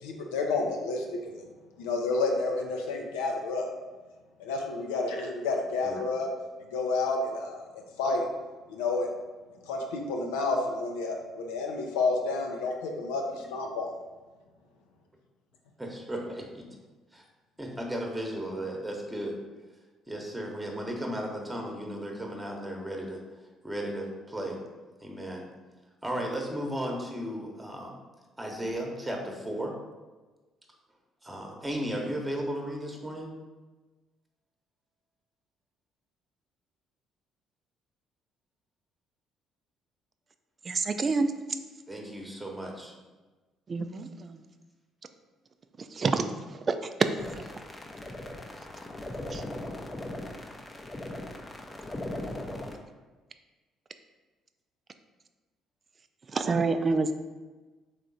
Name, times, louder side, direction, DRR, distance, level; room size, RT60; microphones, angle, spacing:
voice 1, 0.0-1.5 1.8-3.7 4.4-6.3 6.7-7.6 8.0-8.2 8.7-9.1 9.7-13.9, left 3 dB, 75° left, 1 dB, 0.5 m, -30 dB
voice 2, 15.8-16.6 17.1-17.2 17.6-19.4 20.1-23.2 23.6-24.6 25.0-25.5 26.0-28.0 28.4-29.7 31.2-33.3 41.9-42.9, equal, 10° right, 1 dB, 1.0 m, -35 dB
voice 3, 40.7-41.3 43.7-44.4 45.9-46.3 46.7-46.8 49.3-49.4 56.3-57.1, right 4 dB, 40° right, 9 dB, 0.4 m, -27 dB
sound 1, 47.2-52.8, left 1 dB, 25° left, 0.6 m, -39 dB
3.6 x 3.3 x 4.0 m, 1.3 s
hypercardioid pair, 50°, 0 cm